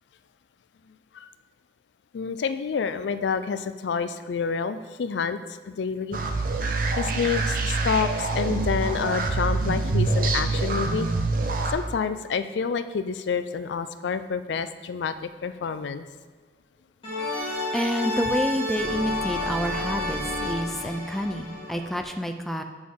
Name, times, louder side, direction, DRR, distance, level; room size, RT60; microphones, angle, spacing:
voice 1, 2.1-5.4 5.7-6.2 7.0-11.1 11.7-16.0, left 6 dB, 85° left, 12 dB, 0.4 m, -28 dB
sound 1, 6.1-11.7, right 3 dB, 50° right, 0.7 m, -25 dB
sound 2, 17.0-22.0, left 2 dB, 30° left, 2.4 m, -30 dB
voice 2, 17.7-22.6, equal, ahead, 5 dB, 0.4 m, -28 dB
7.7 x 6.1 x 3.7 m, 1.4 s
head